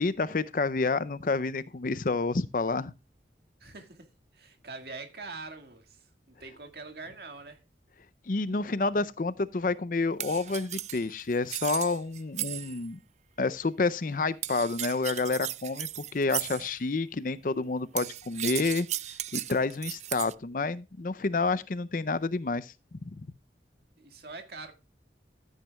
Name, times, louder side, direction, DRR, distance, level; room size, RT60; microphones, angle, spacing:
voice 1, 0.0-2.9 8.3-13.0 13.4-18.9 19.3-22.7 23.1-23.2, left 3 dB, 50° left, 0.5 m, -29 dB
voice 2, 3.6-4.1 4.3-7.6 24.0-24.7, right 3 dB, 65° right, 1.9 m, -44 dB
sound 1, 10.2-12.9 14.4-16.7 18.0-20.3, right 13 dB, 40° right, 0.4 m, -36 dB
13.0 x 9.2 x 2.3 m
head